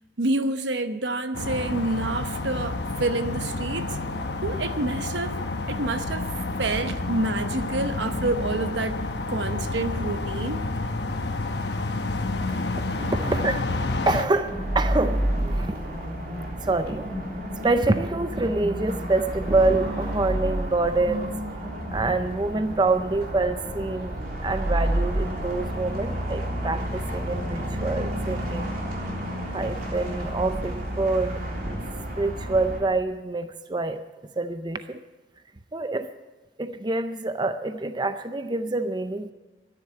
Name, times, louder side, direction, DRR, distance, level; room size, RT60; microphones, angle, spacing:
voice 1, 0.2-4.0 4.4-5.4 5.7-6.3 6.6-9.0 9.3-10.7, right 2 dB, 75° right, 1.0 m, -28 dB
sound 1, 1.3-14.2, left 2 dB, 65° left, 1.0 m, -29 dB
voice 2, 12.5-13.6 14.0-15.7 16.6-17.1 17.6-21.3 21.9-28.7 29.5-31.4 32.2-34.0 34.4-35.0 35.7-36.1 36.6-39.3, right 2 dB, 25° right, 0.5 m, -26 dB
sound 2, 12.9-32.8, right 1 dB, 55° right, 3.5 m, -30 dB
13.5 x 10.5 x 8.2 m
head